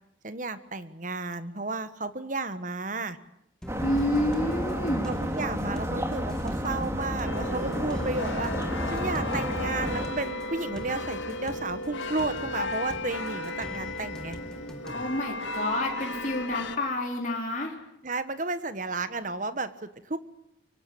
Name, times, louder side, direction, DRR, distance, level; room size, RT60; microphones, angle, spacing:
voice 1, 0.2-3.2 5.0-8.5 8.9-14.4 18.0-20.2, right 3 dB, 40° right, 12 dB, 1.4 m, -33 dB
sound 1, 3.6-15.0, equal, 5° left, 2.5 m, -45 dB
sound 2, 3.7-10.1, equal, 15° right, 2.6 m, -31 dB
voice 2, 3.8-5.1 14.9-17.8, left 1 dB, 40° left, 0 dB, 3.9 m, -29 dB
sound 3, 7.2-16.8, left 2 dB, 80° left, 2.2 m, -35 dB
24.5 x 24.0 x 8.6 m, 0.80 s
head